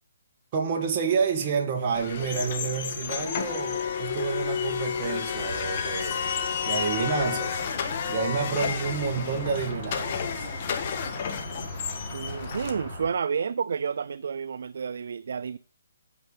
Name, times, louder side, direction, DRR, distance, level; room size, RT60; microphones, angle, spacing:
voice 1, 0.5-6.2 6.6-7.6 8.1-10.5, right 6 dB, 25° right, 2 dB, 1.9 m, -29 dB
sound 1, 1.9-12.7, left 7 dB, 35° left, 1.4 m, -31 dB
sound 2, 5.3-13.1, left 1 dB, ahead, 4.3 m, -39 dB
sound 3, 6.1-8.6, left 4 dB, 15° left, 0.9 m, -41 dB
voice 2, 12.1-15.6, right 6 dB, 55° right, 15 dB, 0.4 m, -30 dB
9.4 x 6.8 x 7.3 m, 0.43 s
hypercardioid pair, 165°, 0 cm